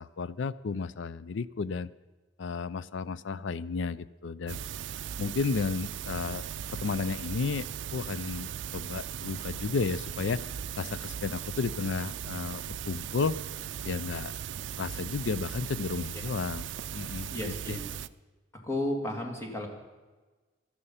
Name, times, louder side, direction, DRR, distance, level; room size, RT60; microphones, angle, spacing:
voice 1, 0.0-1.9 2.4-4.6 5.2-6.4 6.7-7.7 7.9-10.5 10.8-13.4 13.8-14.3 14.8-16.7 16.9-17.8, left 4 dB, 75° left, 17 dB, 0.5 m, -33 dB
sound 1, 4.5-18.1, right 9 dB, 70° right, 0.4 m, -38 dB
voice 2, 17.3-17.9 18.6-19.7, left 1 dB, 15° left, 1 dB, 2.6 m, -33 dB
16.5 x 12.0 x 5.7 m, 1.3 s
head